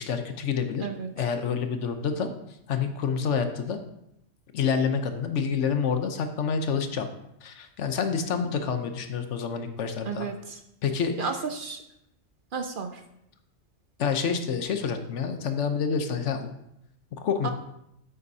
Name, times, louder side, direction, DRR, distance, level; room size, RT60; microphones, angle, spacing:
voice 1, 0.0-0.8 1.2-2.3 2.7-3.8 4.5-7.1 7.4-10.3 10.8-11.3 14.0-16.5 17.1-17.5, left 6 dB, 75° left, 7 dB, 1.1 m, -28 dB
voice 2, 0.8-1.1 10.1-10.6 11.2-11.8 12.5-13.0 17.4-17.5, right 5 dB, 55° right, 6 dB, 0.7 m, -32 dB
9.4 x 7.9 x 2.8 m, 0.80 s
omnidirectional pair, 1.2 m